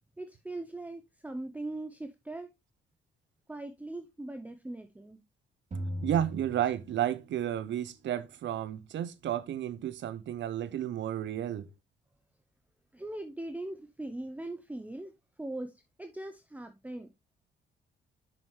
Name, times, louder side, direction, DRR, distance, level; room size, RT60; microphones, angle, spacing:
voice 1, 0.2-2.5 3.5-5.2 12.9-15.1 15.4-15.7 16.0-17.1, right 2 dB, 5° right, 0.7 m, -40 dB
sound 1, 5.7-7.5, equal, 40° right, 3.3 m, -39 dB
voice 2, 6.0-11.7, right 11 dB, 65° right, 0.8 m, -32 dB
7.8 x 6.1 x 3.2 m
cardioid pair, 90°, 20 cm